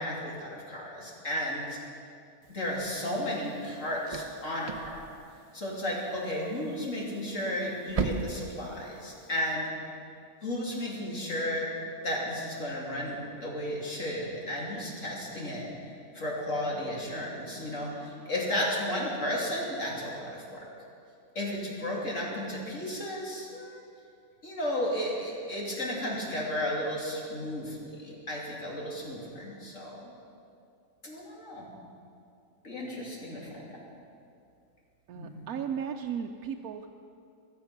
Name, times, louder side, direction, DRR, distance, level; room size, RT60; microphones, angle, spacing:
voice 1, 0.0-1.8 2.5-5.1 5.5-9.7 10.4-11.7 12.0-15.7 16.1-20.7 21.3-23.8 24.4-30.1 31.0-31.7 32.6-33.8 35.1-35.4, left 1 dB, 60° left, -3 dB, 3.2 m, -33 dB
sound 1, 2.4-9.5, right 5 dB, 40° right, 0.6 m, -40 dB
voice 2, 35.1-36.9, right 7 dB, 85° right, 3 dB, 1.1 m, -35 dB
23.0 x 8.4 x 5.8 m, 2.5 s
omnidirectional pair, 1.5 m